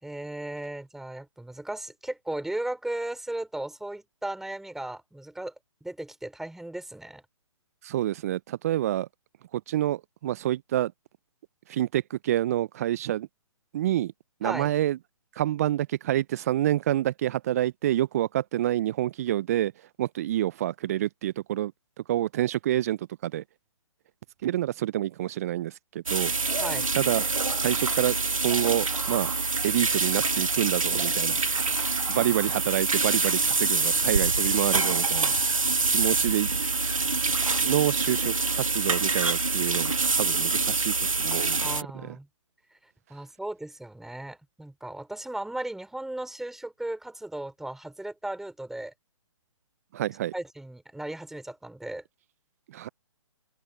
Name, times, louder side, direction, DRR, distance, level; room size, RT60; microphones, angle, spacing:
voice 1, 0.0-5.5 5.8-7.2 14.4-14.7 26.6-26.9 41.6-42.3 43.1-48.9 50.3-52.0, right 1 dB, ahead, 4.8 m, -36 dB
voice 2, 7.8-9.1 9.5-10.9 11.7-13.3 13.7-14.1 14.4-15.0 15.4-19.7 20.0-21.7 22.1-23.4 24.4-26.3 27.0-27.2 27.6-28.2 28.4-29.3 29.6-31.4 32.1-35.3 35.9-36.5 37.6-41.7 41.9-42.2 49.9-50.3 52.7-52.9, right 13 dB, 30° right, 0.5 m, -27 dB
sound 1, 26.1-41.8, right 4 dB, 80° right, 1.8 m, -26 dB
open air
figure-of-eight pair, 135°, 17 cm